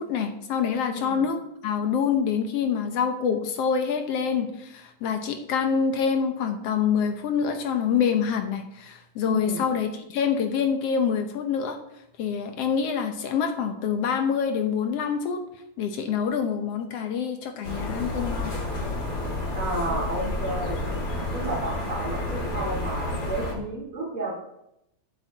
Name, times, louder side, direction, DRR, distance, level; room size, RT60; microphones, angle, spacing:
voice 1, 0.0-11.8 12.2-15.4 15.8-18.5, left 6 dB, 65° left, 6 dB, 1.8 m, -26 dB
voice 2, 0.9-1.2 9.2-9.6 19.5-20.8 21.3-24.4, right 1 dB, 45° right, -6 dB, 3.1 m, -31 dB
sound 1, 17.6-23.5, left 2 dB, 50° left, 5.6 m, -30 dB
13.5 x 8.1 x 4.1 m, 0.83 s
omnidirectional pair, 3.3 m